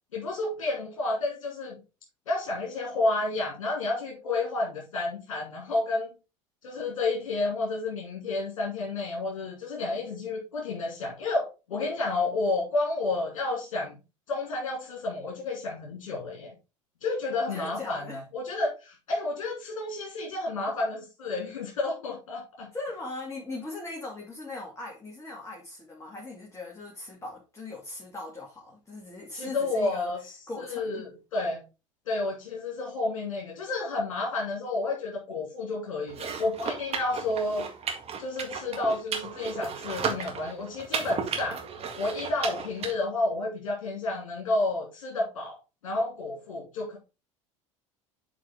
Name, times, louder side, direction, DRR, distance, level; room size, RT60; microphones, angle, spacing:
voice 1, 0.1-1.8 2.3-6.1 6.6-14.0 14.3-16.5 17.0-22.7 29.3-31.6 32.1-37.7 38.2-41.6 42.0-45.6 45.8-47.0, left 2 dB, 75° left, 2.5 m, -30 dB
voice 2, 17.5-18.2 22.7-30.1 30.5-31.0, left 2 dB, 20° left, 2.5 m, -39 dB
sound 1, 36.1-42.9, right 6 dB, 40° right, 1.9 m, -34 dB
8.5 x 4.8 x 3.6 m
hypercardioid pair, 75°, 17 cm